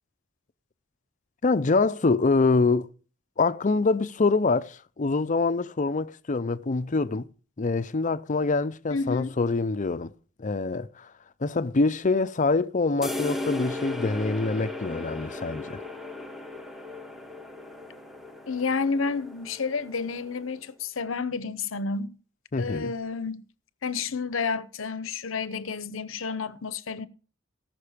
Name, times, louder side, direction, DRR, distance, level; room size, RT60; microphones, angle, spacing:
voice 1, 1.4-2.9 3.4-7.3 7.6-10.1 10.4-11.1 11.4-15.8 22.5-22.9, left 3 dB, 40° left, 0.6 m, -25 dB
voice 2, 8.9-9.3 18.5-22.2 22.6-23.5 23.8-27.1, left 4 dB, 90° left, 0.8 m, -30 dB
sound 1, 13.0-20.5, left 2 dB, ahead, 1.0 m, -36 dB
18.0 x 6.1 x 5.0 m
head